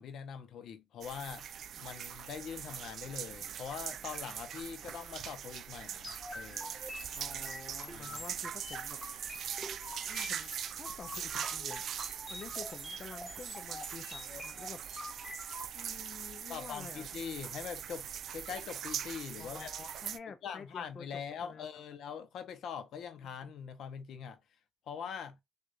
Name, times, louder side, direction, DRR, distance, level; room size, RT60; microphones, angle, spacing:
voice 1, 0.0-1.5 1.8-6.8 7.9-8.2 16.5-18.1 18.3-19.7 20.4-24.4 24.9-25.4, left 7 dB, 80° left, 0.8 m, -43 dB
sound 1, 1.0-20.2, right 9 dB, 65° right, 0.4 m, -42 dB
sound 2, 6.0-15.7, left 1 dB, 15° left, 0.9 m, -46 dB
voice 2, 7.1-9.0 9.3-9.4 10.1-11.9 12.3-14.8 15.7-17.1 19.4-21.8, left 5 dB, 45° left, 0.4 m, -49 dB
6.6 x 2.5 x 2.6 m
cardioid pair, 145°, 0 cm